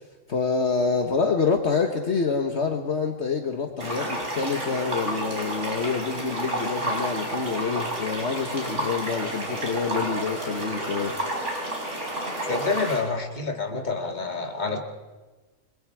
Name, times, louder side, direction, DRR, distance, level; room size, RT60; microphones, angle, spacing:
voice 1, 0.3-11.1, left 5 dB, 55° left, 4 dB, 1.7 m, -27 dB
sound 1, 3.8-13.0, right 1 dB, 60° right, 5.6 m, -30 dB
voice 2, 12.5-14.8, left 4 dB, 35° left, 4 dB, 2.2 m, -28 dB
28.5 x 22.5 x 4.8 m, 1.2 s
omnidirectional pair, 1.4 m